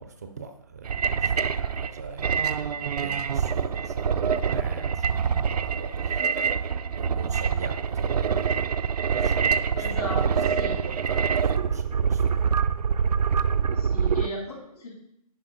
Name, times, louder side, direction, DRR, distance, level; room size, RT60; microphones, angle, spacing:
voice 1, 0.0-8.7 9.1-10.1 10.5-12.5, right 4 dB, 25° right, 0.4 m, -41 dB
sound 1, 0.8-14.3, right 6 dB, 85° right, 0.5 m, -25 dB
voice 2, 9.8-10.8 13.7-14.9, left 1 dB, 75° left, 3.5 m, -36 dB
10.0 x 4.8 x 3.8 m
hypercardioid pair, 165°, 20 cm